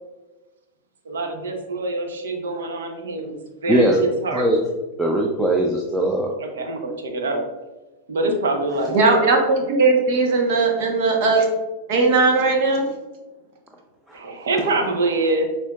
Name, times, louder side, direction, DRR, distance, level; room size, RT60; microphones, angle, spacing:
voice 1, 1.0-3.4 3.6-4.6 6.4-7.5 8.1-9.0 14.1-15.5, right 2 dB, 85° right, 4 dB, 0.8 m, -25 dB
voice 2, 3.7-4.0 4.3-4.6 5.0-6.3 14.1-14.2, right 1 dB, 5° right, -1 dB, 0.5 m, -20 dB
voice 3, 8.9-11.5 11.9-12.9, right 3 dB, 60° right, 1 dB, 1.0 m, -18 dB
6.5 x 2.7 x 2.3 m, 1.1 s
hypercardioid pair, 115°, 0 cm